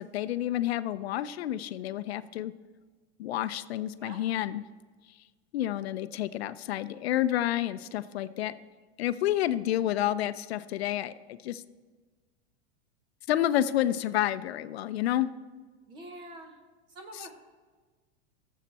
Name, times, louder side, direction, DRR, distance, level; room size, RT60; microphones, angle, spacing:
voice 1, 0.0-2.5 3.2-4.6 5.5-8.5 9.0-11.6 13.3-15.3 17.1-17.3, left 12 dB, 70° left, 14 dB, 0.5 m, -29 dB
voice 2, 15.9-16.6 16.9-17.3, right 1 dB, 15° right, 5 dB, 0.6 m, -45 dB
16.5 x 7.4 x 4.1 m, 1.4 s
supercardioid pair, 180°, 33 cm